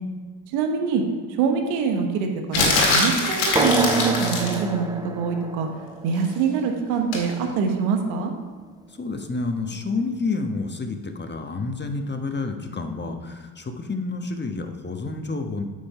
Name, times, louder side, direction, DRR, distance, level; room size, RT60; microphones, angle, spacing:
voice 1, 0.5-1.0 1.4-5.7 6.0-8.3, right 5 dB, 80° right, 4 dB, 1.2 m, -24 dB
sound 1, 2.5-4.6 7.1-7.3, left 3 dB, 85° left, 2.0 m, -22 dB
sound 2, 3.6-7.5, right 2 dB, 10° right, 0.6 m, -28 dB
voice 2, 9.0-15.6, left 3 dB, 20° left, 5 dB, 1.2 m, -29 dB
8.6 x 5.4 x 5.5 m, 1.5 s
hypercardioid pair, 55°, 46 cm